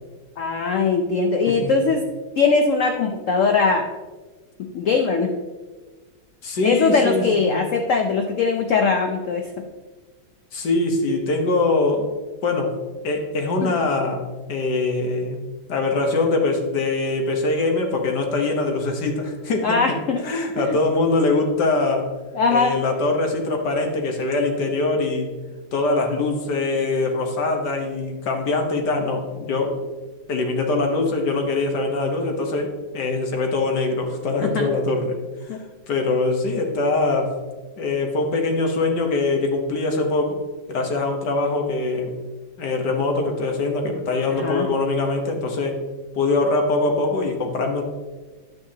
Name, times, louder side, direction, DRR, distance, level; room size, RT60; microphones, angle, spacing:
voice 1, 0.4-2.0 2.4-3.9 4.6-5.3 6.6-9.6 13.6-13.7 19.6-20.2 20.7-20.8 22.3-22.7 34.4-34.7 35.5-35.6 44.4-44.7, left 4 dB, 80° left, 4 dB, 0.7 m, -21 dB
voice 2, 1.5-1.9 6.4-7.7 10.5-12.1 12.4-12.7 13.0-14.2 14.5-15.4 15.7-19.8 20.2-22.1 22.5-25.3 25.7-29.8 30.3-35.2 35.4-35.6 35.9-37.3 37.8-40.4 40.7-42.1 42.6-45.8 46.1-47.8, left 3 dB, 60° left, 3 dB, 1.7 m, -23 dB
10.5 x 8.7 x 2.9 m, 1.3 s
omnidirectional pair, 2.1 m